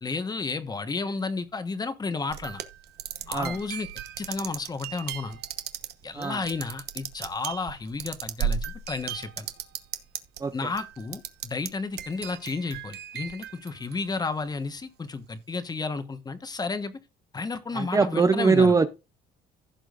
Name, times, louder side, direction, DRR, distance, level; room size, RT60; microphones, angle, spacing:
voice 1, 0.0-2.6 3.3-3.9 4.2-5.4 6.0-9.5 10.5-17.0 17.3-18.8, left 4 dB, 25° left, 1.2 m, -32 dB
sound 1, 2.3-10.4 10.7-11.7 12.0-14.4, right 9 dB, 75° right, 1.1 m, -35 dB
voice 2, 17.7-18.9, right 4 dB, 20° right, 0.6 m, -22 dB
15.5 x 6.2 x 2.5 m
cardioid pair, 110°, 17 cm